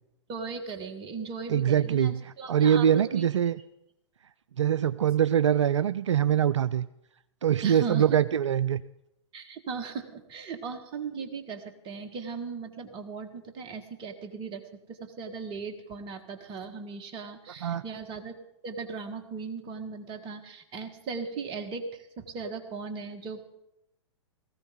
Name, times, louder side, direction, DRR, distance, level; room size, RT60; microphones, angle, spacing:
voice 1, 0.3-3.3 7.6-8.2 9.3-18.4 18.6-23.5, right 5 dB, 30° right, 6 dB, 1.5 m, -38 dB
voice 2, 1.5-3.6 4.6-6.9 7.4-8.8 17.6-17.8, right 9 dB, 80° right, 15 dB, 0.4 m, -23 dB
17.5 x 15.0 x 3.8 m, 0.86 s
figure-of-eight pair, 110°, 15 cm